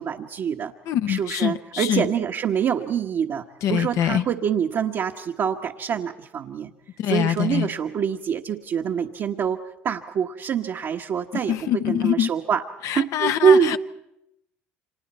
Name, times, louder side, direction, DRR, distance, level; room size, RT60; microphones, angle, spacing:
voice 1, 0.0-0.7 1.1-3.4 3.7-6.7 7.1-12.6 12.9-13.8, right 7 dB, 55° right, -2 dB, 1.2 m, -25 dB
voice 2, 0.9-2.1 3.6-4.2 7.0-7.7 11.5-12.3 12.8-13.8, left 11 dB, 65° left, 11 dB, 0.9 m, -24 dB
30.0 x 26.0 x 4.3 m, 0.83 s
supercardioid pair, 75°, 6 cm